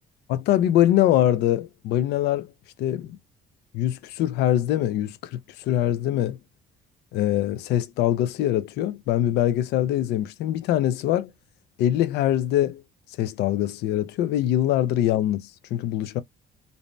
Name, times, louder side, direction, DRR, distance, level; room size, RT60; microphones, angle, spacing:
voice 1, 0.3-2.5 2.8-3.2 3.7-6.4 7.1-11.3 11.8-12.8 13.2-16.2, left 12 dB, 80° left, 0.4 m, -23 dB
2.7 x 2.1 x 3.1 m
cardioid pair, 110°, 17 cm